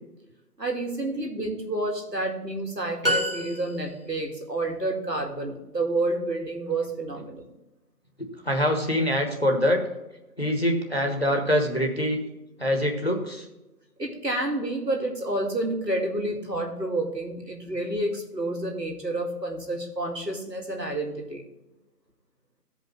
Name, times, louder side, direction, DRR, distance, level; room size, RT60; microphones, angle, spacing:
voice 1, 0.6-7.5 14.0-21.4, right 2 dB, 85° right, 1 dB, 2.3 m, -29 dB
sound 1, 3.0-4.2, equal, 35° right, 1.4 m, -28 dB
voice 2, 8.2-9.8 10.4-12.2 12.6-13.5, equal, 40° left, 2 dB, 1.3 m, -24 dB
15.0 x 5.3 x 3.2 m, 0.99 s
figure-of-eight pair, 180°, 48 cm